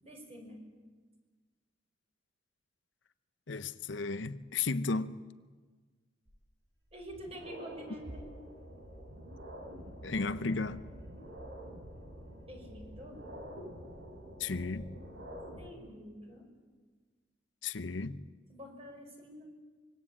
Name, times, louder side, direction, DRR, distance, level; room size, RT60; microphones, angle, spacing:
voice 1, 0.0-0.6 6.9-8.2 12.5-13.2 15.6-16.5 18.5-19.5, equal, 30° right, 6.0 m, -47 dB
voice 2, 3.5-5.1 10.0-10.8 14.4-14.9 17.6-18.2, left 4 dB, 75° left, 0.8 m, -34 dB
sound 1, 6.3-6.4 6.9-15.7, equal, 70° right, 5.0 m, -47 dB
25.0 x 23.0 x 8.7 m
head